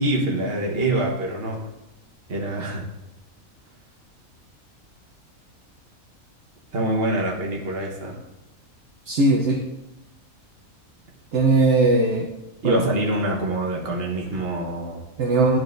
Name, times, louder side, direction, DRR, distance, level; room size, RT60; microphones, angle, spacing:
voice 1, 0.0-1.7 2.3-2.8 6.7-8.2 12.6-15.0, right 1 dB, 45° right, -1 dB, 1.4 m, -25 dB
voice 2, 9.1-9.6 11.3-12.3 12.6-12.8 15.2-15.6, right 2 dB, 60° right, 1 dB, 1.0 m, -19 dB
11.0 x 4.6 x 2.6 m, 0.95 s
omnidirectional pair, 1.5 m